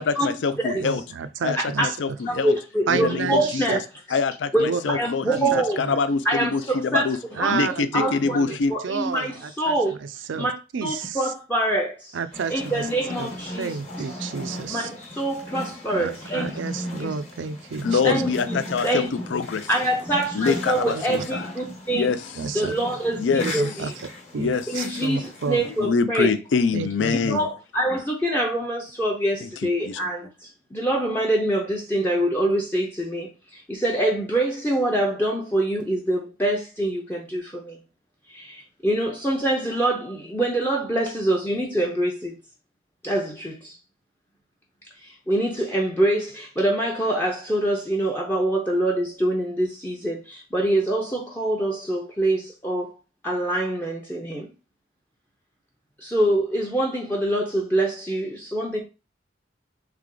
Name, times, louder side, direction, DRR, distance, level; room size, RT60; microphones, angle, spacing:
voice 1, 0.0-1.0 1.4-2.5 2.9-3.8 4.1-5.5 5.8-7.2 7.5-8.7 17.8-19.7 20.3-21.4 21.9-22.2 23.2-23.6 24.4-24.7 25.8-27.4 29.4-29.5 29.8-30.0, left 5 dB, 75° left, 0.4 m, -25 dB
voice 2, 0.8-2.2 2.9-3.8 4.6-5.0 5.2-5.9 7.3-8.6 8.8-9.8 10.3-10.5 10.7-11.2 12.1-12.8 13.2-13.3 13.6-14.9 16.0-18.2 20.9-21.0 22.4-22.7 23.4-23.9 24.3-25.6 26.7-27.3, right 5 dB, 85° right, 0.4 m, -30 dB
voice 3, 2.3-3.8 4.5-5.8 6.2-7.1 7.4-7.6 7.9-8.4 8.7-10.0 10.3-10.5 10.8-12.2 12.5-14.1 14.7-16.6 17.0-17.1 18.0-19.1 19.7-22.1 22.5-23.9 24.7-26.3 27.1-30.3 30.7-37.8 38.3-42.4 43.0-43.8 45.0-52.9 53.2-54.5 56.0-58.8, right 1 dB, 10° left, 0.5 m, -25 dB
sound 1, 12.3-25.9, equal, 35° left, 1.1 m, -37 dB
3.3 x 3.3 x 3.7 m
head